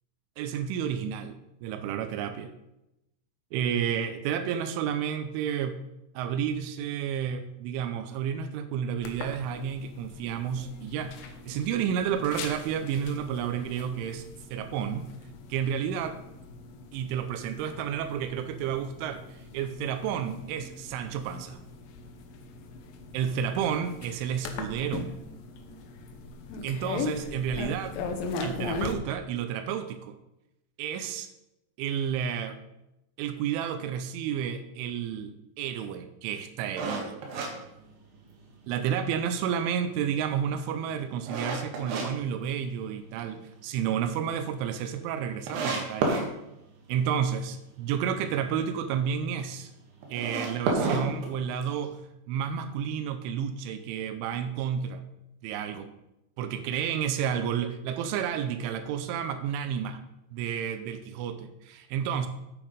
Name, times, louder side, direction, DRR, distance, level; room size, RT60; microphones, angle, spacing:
voice 1, 0.4-1.4 1.6-2.5 3.5-5.8 6.1-15.1 15.5-16.2 16.9-21.6 23.1-25.1 26.6-28.0 28.4-30.2 30.8-31.3 31.8-32.6 33.2-37.2 38.7-46.2 46.9-49.7 50.1-52.0 52.3-55.0 55.4-55.9 56.4-60.0 60.3-62.3, right 8 dB, 85° right, 9 dB, 3.1 m, -31 dB
sound 1, 9.0-28.9, left 4 dB, 80° left, 2.0 m, -40 dB
sound 2, 36.8-38.5 38.9-39.0 39.5-42.1 42.4-43.2 43.5-43.6 44.0-44.1 44.3-44.4 45.0-45.1 45.5-46.3 50.0-51.9, right 3 dB, 65° right, 3.4 m, -30 dB
8.6 x 8.6 x 5.2 m, 0.89 s
omnidirectional pair, 5.5 m